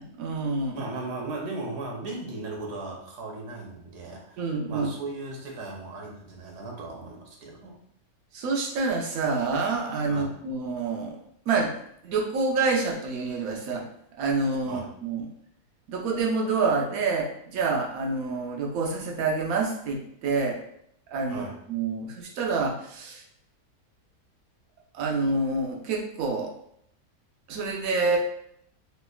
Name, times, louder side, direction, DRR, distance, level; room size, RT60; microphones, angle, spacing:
voice 1, 0.0-0.8 4.4-4.9 8.3-11.2 11.5-11.8 12.0-13.8 14.2-15.3 15.9-20.6 21.1-23.2 24.9-26.5 27.5-28.2, right 4 dB, 65° right, 0 dB, 1.0 m, -27 dB
voice 2, 0.7-7.8 10.1-10.3 14.6-14.9 21.3-21.6, right 2 dB, 85° right, -1 dB, 1.3 m, -37 dB
3.2 x 3.0 x 2.3 m, 0.70 s
omnidirectional pair, 1.7 m